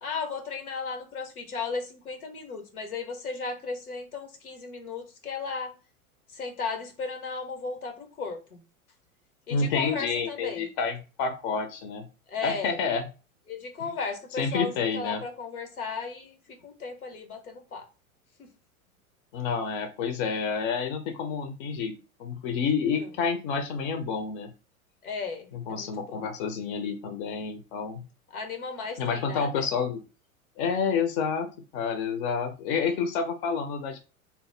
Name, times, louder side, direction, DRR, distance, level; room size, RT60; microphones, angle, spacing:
voice 1, 0.0-5.7 6.3-8.6 9.5-10.7 12.3-12.8 13.5-17.9 18.4-18.5 22.8-23.1 25.0-26.2 28.3-29.7, left 4 dB, 90° left, 0.8 m, -35 dB
voice 2, 9.5-12.1 12.4-13.0 14.4-15.2 19.3-24.5 25.5-28.1 29.0-30.0 30.6-34.0, left 5 dB, 40° left, 0.4 m, -29 dB
2.8 x 2.0 x 3.2 m
figure-of-eight pair, 90°, 43 cm